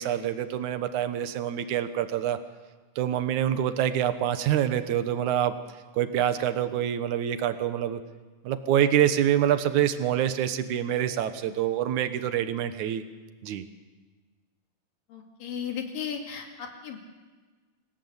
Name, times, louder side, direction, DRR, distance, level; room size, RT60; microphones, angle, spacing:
voice 1, 0.0-2.4 3.0-5.6 5.9-8.0 8.4-13.0 13.4-13.6, right 10 dB, 65° right, 11 dB, 2.1 m, -26 dB
voice 2, 15.1-17.0, left 7 dB, 60° left, 3 dB, 3.9 m, -35 dB
27.0 x 17.5 x 8.1 m, 1.3 s
omnidirectional pair, 4.5 m